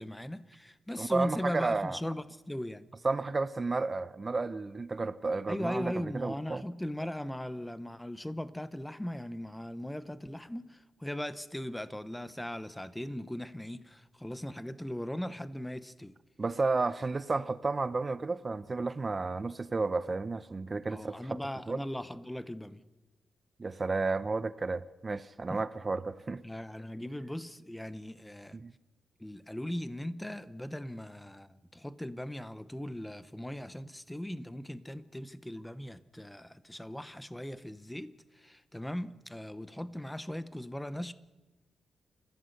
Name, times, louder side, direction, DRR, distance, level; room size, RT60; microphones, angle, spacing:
voice 1, 0.0-2.9 5.5-16.1 20.8-22.8 25.5-25.6 26.4-28.6 29.2-41.1, left 1 dB, 5° left, 0.9 m, -39 dB
voice 2, 1.0-2.0 3.0-6.6 16.4-21.4 21.7-21.8 23.6-26.4 28.5-28.7, right 3 dB, 25° right, 0.7 m, -32 dB
29.0 x 15.5 x 6.7 m
wide cardioid pair, 135°, 0 cm